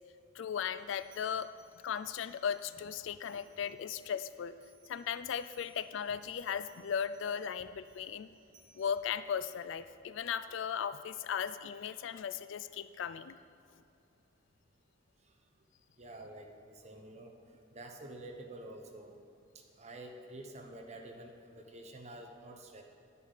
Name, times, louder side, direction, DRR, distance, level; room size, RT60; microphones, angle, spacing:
voice 1, 0.4-1.5 1.8-4.5 4.9-8.3 8.8-13.4, left 7 dB, 65° left, 14 dB, 0.3 m, -37 dB
sound 1, 0.8-2.8 3.2-8.8, right 3 dB, 55° right, 2.2 m, -66 dB
voice 2, 16.0-17.3 17.7-19.1 19.8-22.8, right 1 dB, 35° right, 3 dB, 0.9 m, -48 dB
10.0 x 9.3 x 4.0 m, 2.7 s
head